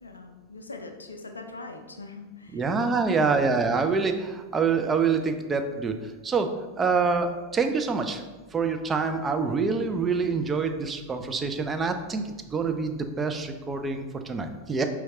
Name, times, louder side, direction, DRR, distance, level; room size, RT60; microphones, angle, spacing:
voice 1, 0.0-2.7 3.2-3.6, left 3 dB, 75° left, 4 dB, 0.5 m, -42 dB
voice 2, 2.5-6.5 6.8-8.2 8.5-14.8, right 4 dB, 20° right, 6 dB, 0.4 m, -26 dB
4.4 x 3.5 x 2.8 m, 1.2 s
figure-of-eight pair, 90°, 0 cm